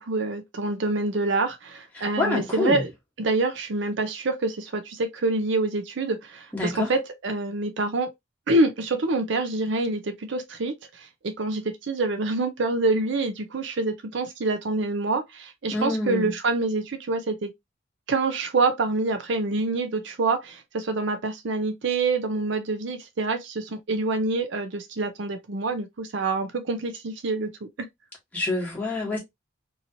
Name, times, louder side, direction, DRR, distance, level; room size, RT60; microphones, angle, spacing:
voice 1, 0.0-2.9 3.2-8.1 8.5-17.5 18.1-27.7, right 3 dB, 60° right, 0.5 m, -26 dB
voice 2, 1.9-2.8 6.5-6.9 15.7-16.3 28.3-29.2, left 2 dB, 5° left, 1.1 m, -27 dB
2.9 x 2.7 x 2.6 m
head